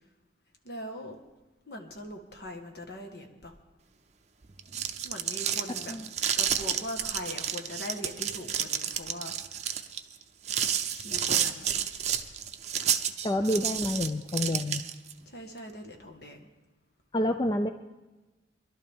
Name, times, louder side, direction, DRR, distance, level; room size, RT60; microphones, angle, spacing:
voice 1, 0.6-1.2 1.7-3.5 5.0-5.9 6.4-9.4 10.9-11.7 12.0-12.2 12.8-13.0 13.4-13.6 15.3-16.5, left 1 dB, 60° left, 4 dB, 1.5 m, -41 dB
sound 1, 4.5-15.1, right 9 dB, 35° right, 0.6 m, -30 dB
voice 2, 13.2-14.8 17.1-17.7, left 1 dB, 25° left, 7 dB, 0.4 m, -28 dB
21.5 x 12.0 x 3.6 m, 1.1 s
head